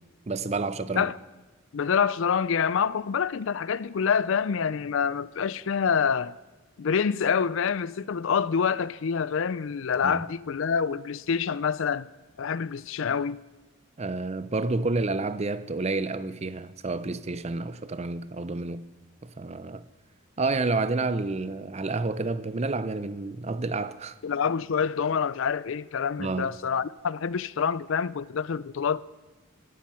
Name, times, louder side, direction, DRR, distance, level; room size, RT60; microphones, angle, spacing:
voice 1, 0.3-1.1 10.0-10.2 14.0-18.9 19.2-19.8 20.4-24.2 26.2-26.5, right 3 dB, 30° right, 0.5 m, -29 dB
voice 2, 1.7-6.4 6.8-12.1 12.4-13.4 24.2-29.0, left 6 dB, 60° left, 0.4 m, -26 dB
17.0 x 12.0 x 5.7 m
head